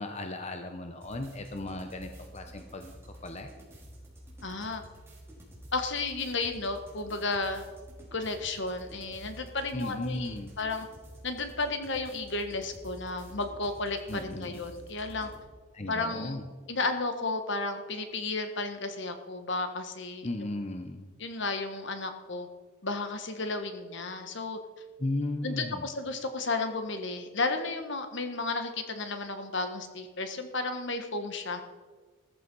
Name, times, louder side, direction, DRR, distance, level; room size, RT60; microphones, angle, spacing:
voice 1, 0.0-2.9 3.2-3.5 9.7-10.5 14.1-14.6 15.7-16.4 20.2-21.1 25.0-25.8, left 2 dB, 30° left, 5 dB, 0.9 m, -35 dB
sound 1, 1.0-15.5, equal, 10° right, 4.4 m, -49 dB
voice 2, 4.4-4.8 5.7-7.6 8.1-10.9 11.2-15.3 15.9-16.4 16.7-20.3 21.2-22.5 22.8-24.6 25.4-31.6, left 3 dB, 60° left, 7 dB, 1.5 m, -33 dB
16.0 x 14.0 x 5.5 m, 1.4 s
head